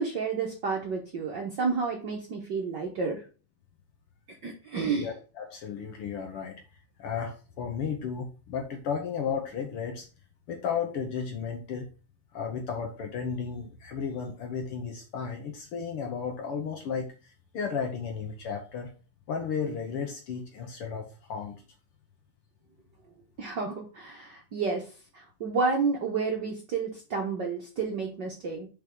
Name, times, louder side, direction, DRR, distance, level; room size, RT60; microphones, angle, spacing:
voice 1, 0.0-3.2 4.3-5.1 23.4-24.9 25.1-28.7, right 4 dB, 60° right, 0 dB, 1.2 m, -30 dB
voice 2, 5.0-6.6 7.0-10.1 10.5-11.9 12.3-18.9 19.3-21.6, left 6 dB, 65° left, 3 dB, 1.5 m, -34 dB
5.4 x 4.6 x 5.2 m, 0.35 s
omnidirectional pair, 3.3 m